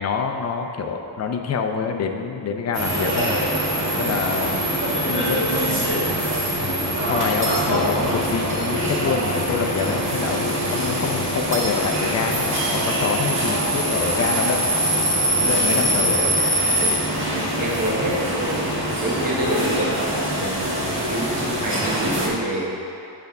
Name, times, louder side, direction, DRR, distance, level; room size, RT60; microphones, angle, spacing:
voice 1, 0.0-3.4 4.0-4.6 5.1-6.3 6.6-14.7 15.4-16.4, left 5 dB, 35° left, 3 dB, 0.5 m, -26 dB
sound 1, 2.7-22.3, right 1 dB, 25° right, 1.5 m, -23 dB
voice 2, 17.3-18.6 19.0-23.0, right 1 dB, 45° right, -5 dB, 1.4 m, -28 dB
8.1 x 3.5 x 6.6 m, 2.6 s
wide cardioid pair, 170°, 45 cm